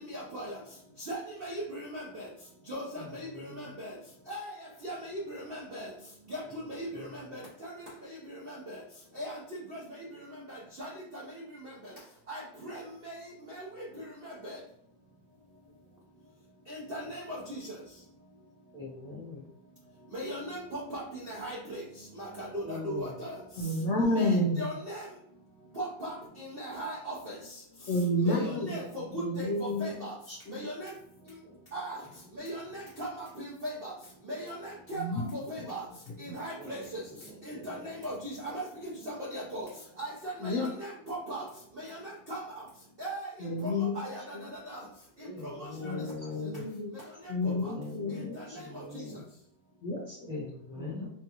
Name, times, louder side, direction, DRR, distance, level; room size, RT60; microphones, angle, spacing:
voice 1, 0.1-0.5 1.1-2.2 2.7-3.3 3.6-3.9 4.3-4.5 4.8-5.9 6.3-6.4 6.7-7.7 8.5-8.6 9.2-9.4 10.8-11.2 12.3-13.1 14.4-14.6 16.7-17.6 20.1-21.0 21.3-21.8 22.2-23.3 24.1-25.0 25.8-26.1 26.4-27.3 28.2-29.0 29.4-30.1 30.5-30.9 31.7-32.0 32.4-33.9 34.3-35.0 35.3-35.8 36.2-37.0 37.6-39.7 40.0-41.4 41.8-41.9 42.3-42.4 43.0-43.3 43.6-44.2 44.7-44.8, right 1 dB, 70° right, -5 dB, 0.5 m, -38 dB
voice 2, 3.0-3.7 6.9-7.1 18.7-19.4 22.6-23.1 24.1-24.5 28.3-29.0 29.2-29.3 31.4-31.6 36.5-36.8 37.5-37.9 45.2-46.6 47.4-48.3 48.5-49.2 50.3-51.1, left 2 dB, 5° right, -6 dB, 0.6 m, -41 dB
voice 3, 23.6-24.6 27.9-28.8 29.2-30.0 30.3-30.6 34.9-35.2 40.4-40.7 43.4-44.0 45.8-46.1 46.4-46.9 47.3-48.6 49.8-50.3 50.8-51.1, left 1 dB, 90° left, -2 dB, 0.6 m, -30 dB
3.3 x 2.3 x 2.8 m, 0.71 s
omnidirectional pair, 2.0 m